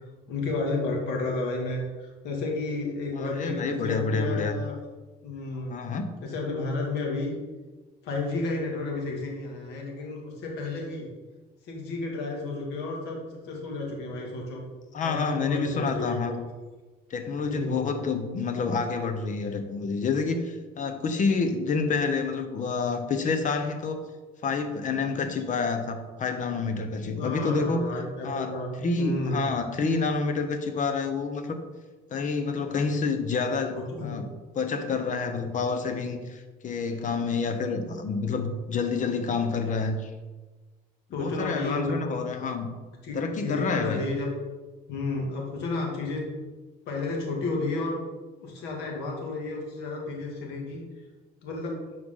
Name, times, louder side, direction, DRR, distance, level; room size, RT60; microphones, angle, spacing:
voice 1, 0.0-4.8 5.2-5.8 6.2-7.3 8.0-11.1 11.7-14.6 15.0-16.4 17.4-17.9 27.2-28.7 29.0-29.6 33.7-34.2 41.1-41.9 43.0-44.3 44.9-46.2 46.9-48.0 48.4-50.8 51.4-51.7, left 3 dB, 85° left, -1 dB, 2.3 m, -32 dB
voice 2, 3.2-4.5 5.7-6.1 14.9-16.4 17.1-24.0 24.4-27.8 28.2-31.6 32.1-34.3 34.5-40.1 41.1-42.7 43.1-44.0, left 4 dB, 50° left, 7 dB, 1.1 m, -28 dB
11.0 x 4.7 x 3.8 m, 1.3 s
cardioid pair, 110°, 17 cm